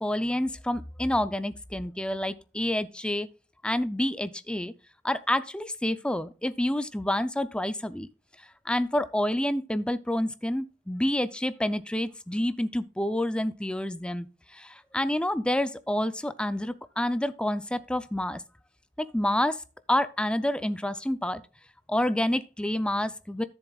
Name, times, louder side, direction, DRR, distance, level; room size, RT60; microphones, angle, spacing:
voice 1, 0.0-3.3 3.6-4.7 5.0-8.1 8.7-14.3 14.5-18.4 19.0-19.6 19.9-21.4 21.9-23.4, left 1 dB, 5° left, 0.5 m, -28 dB
13.0 x 7.2 x 2.4 m
head